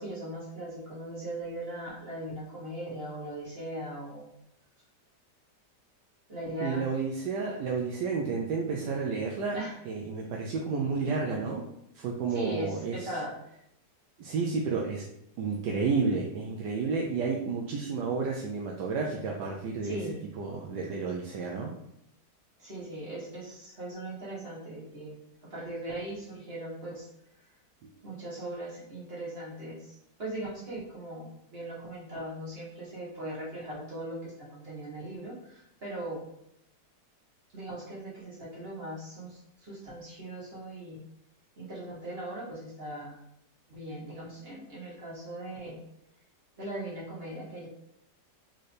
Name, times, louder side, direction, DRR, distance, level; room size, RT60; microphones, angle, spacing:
voice 1, 0.0-4.2 6.3-6.9 9.5-9.8 12.3-13.4 19.8-20.2 22.6-25.2 25.4-27.1 28.0-36.2 37.5-41.0 41.6-43.2 43.7-45.8 46.6-47.7, right 1 dB, 35° right, -6 dB, 1.6 m, -39 dB
voice 2, 6.6-9.6 9.9-11.6 11.9-13.1 14.2-15.1 15.4-20.0 20.4-21.7 27.8-27.9, right 4 dB, 80° right, -1 dB, 1.2 m, -31 dB
4.2 x 3.8 x 3.3 m, 0.78 s
omnidirectional pair, 1.8 m